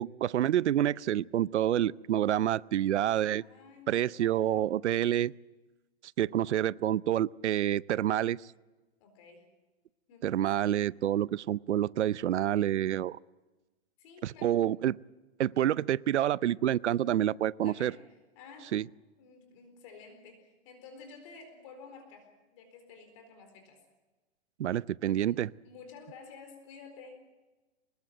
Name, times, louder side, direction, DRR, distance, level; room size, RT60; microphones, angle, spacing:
voice 1, 0.0-3.4 3.9-5.3 6.2-8.4 10.2-13.2 14.2-14.9 15.4-17.9 18.7-18.8 24.6-25.5, right 11 dB, 85° right, 21 dB, 0.7 m, -28 dB
voice 2, 3.4-4.7 9.0-9.4 10.1-10.3 14.0-14.6 17.6-18.0 18.3-18.7 19.2-23.8 25.1-25.4 25.6-27.1, left 5 dB, 30° left, 6 dB, 4.3 m, -51 dB
25.0 x 20.0 x 7.7 m, 1.2 s
hypercardioid pair, 175°, 34 cm